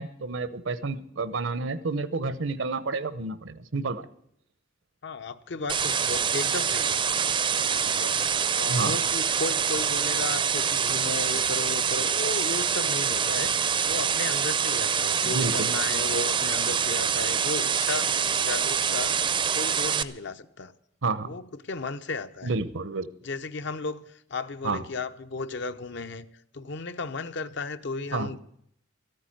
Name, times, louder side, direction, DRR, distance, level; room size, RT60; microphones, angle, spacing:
voice 1, 0.0-4.1 8.7-9.0 15.2-15.7 21.0-21.3 22.4-23.1 24.6-24.8 28.1-28.3, right 3 dB, 80° right, 0.9 m, -30 dB
voice 2, 5.0-7.0 7.8-8.2 8.5-19.2 19.5-20.7 21.2-22.5 23.2-26.3 26.5-28.4, left 3 dB, 65° left, 0.8 m, -35 dB
sound 1, 5.7-20.0, right 7 dB, 25° right, 0.5 m, -25 dB
14.0 x 9.0 x 9.0 m
head